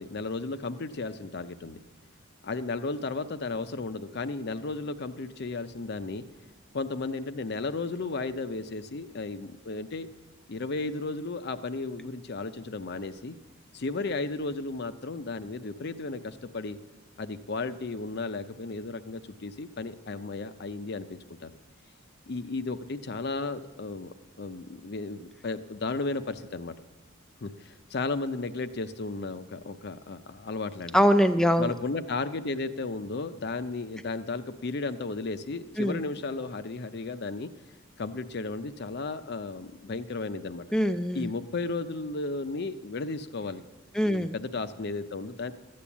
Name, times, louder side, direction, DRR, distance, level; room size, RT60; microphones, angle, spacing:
voice 1, 0.0-1.8 2.4-6.2 6.7-10.1 10.5-13.4 13.7-16.8 17.2-21.5 22.3-26.7 27.4-31.0 31.6-37.5 38.0-40.7 41.1-43.6 44.0-45.5, left 3 dB, 55° left, 12 dB, 0.6 m, -34 dB
voice 2, 30.9-31.7 35.8-36.0 40.7-41.3 43.9-44.4, equal, 5° left, 8 dB, 0.3 m, -23 dB
13.0 x 8.6 x 7.2 m, 1.1 s
head